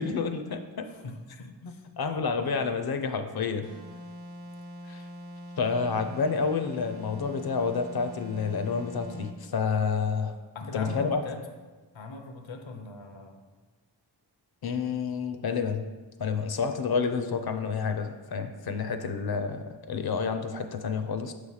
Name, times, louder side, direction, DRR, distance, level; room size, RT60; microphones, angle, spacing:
voice 1, 0.0-0.9 1.6-3.7 4.9-5.1 5.6-10.4 10.7-11.2 14.6-15.9 16.2-21.3, left 5 dB, 55° left, 8 dB, 0.6 m, -29 dB
voice 2, 0.9-1.8 2.4-2.8 10.5-11.4 11.9-13.4, left 3 dB, 85° left, 5 dB, 0.8 m, -41 dB
sound 1, 3.6-9.4, equal, 55° right, 0.7 m, -43 dB
6.8 x 3.2 x 5.5 m, 1.3 s
wide cardioid pair, 130°, 45 cm